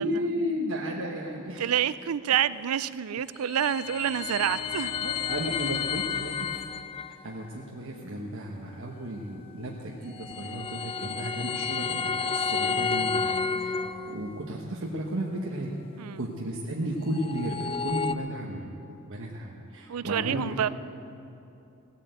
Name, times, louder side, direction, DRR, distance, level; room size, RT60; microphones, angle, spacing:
voice 1, 0.0-1.7 5.0-6.7 7.2-15.8 16.2-20.7, equal, 65° right, -2 dB, 1.2 m, -34 dB
voice 2, 1.6-4.9 16.0-16.2 19.9-20.7, right 9 dB, 85° right, 16 dB, 0.4 m, -27 dB
sound 1, 3.2-7.2 10.0-14.4 16.9-18.1, left 5 dB, 25° left, 0.4 m, -31 dB
17.5 x 8.3 x 8.1 m, 2.8 s
head